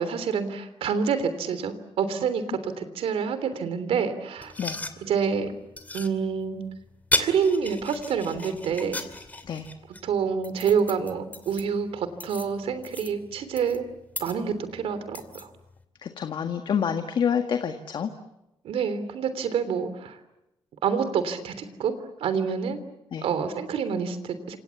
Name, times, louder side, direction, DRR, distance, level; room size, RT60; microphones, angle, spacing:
voice 1, 0.0-4.5 5.0-5.5 5.9-6.6 7.2-9.0 10.0-13.8 14.2-15.5 18.6-20.2 20.8-21.9 22.2-22.8 23.2-24.6, right 6 dB, 80° right, 11 dB, 3.3 m, -27 dB
sound 1, 4.4-15.8, left 2 dB, 15° left, 2.7 m, -36 dB
voice 2, 16.0-18.1 23.1-23.3, left 7 dB, 55° left, 6 dB, 1.7 m, -27 dB
30.0 x 26.5 x 7.2 m, 0.91 s
cardioid pair, 130°, 10 cm